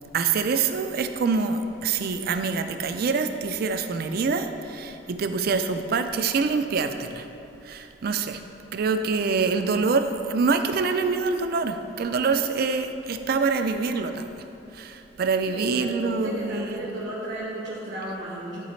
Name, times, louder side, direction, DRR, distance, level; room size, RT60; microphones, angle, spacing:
voice 1, 0.1-7.3 7.6-8.4 8.7-14.3 14.7-16.8, right 4 dB, 55° right, 8 dB, 0.4 m, -25 dB
voice 2, 15.5-18.7, right 1 dB, 80° right, -6 dB, 1.1 m, -33 dB
11.0 x 4.1 x 3.2 m, 2.8 s
head